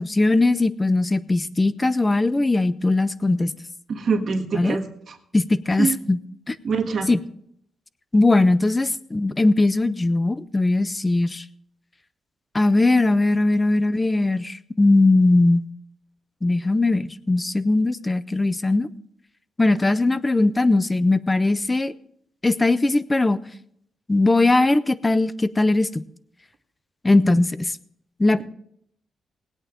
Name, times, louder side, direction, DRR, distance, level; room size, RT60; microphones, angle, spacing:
voice 1, 0.0-3.5 4.5-4.8 5.3-6.2 6.5-6.6 7.1-7.2 8.1-11.4 12.5-15.7 16.4-18.9 19.6-21.9 22.4-23.4 24.1-26.0 27.0-27.7 28.2-28.4, left 2 dB, 15° left, 16 dB, 0.5 m, -20 dB
voice 2, 3.9-5.2 5.8-6.0 6.6-7.1 27.2-27.3, right 5 dB, 45° right, 3 dB, 1.5 m, -25 dB
20.0 x 8.8 x 3.7 m, 0.69 s
wide cardioid pair, 170°, 0 cm